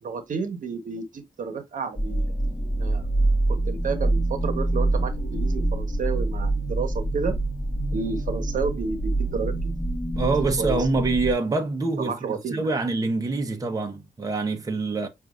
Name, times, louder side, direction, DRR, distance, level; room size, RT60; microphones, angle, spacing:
voice 1, 0.0-2.3 2.8-3.0 3.5-7.4 7.9-9.5 10.4-10.9 12.0-12.7, right 5 dB, 75° right, 1.0 m, -31 dB
sound 1, 2.0-11.3, right 2 dB, 15° left, 1.2 m, -26 dB
voice 2, 10.1-15.1, right 3 dB, 25° right, 0.8 m, -25 dB
6.2 x 2.5 x 2.4 m
wide cardioid pair, 125°, 13 cm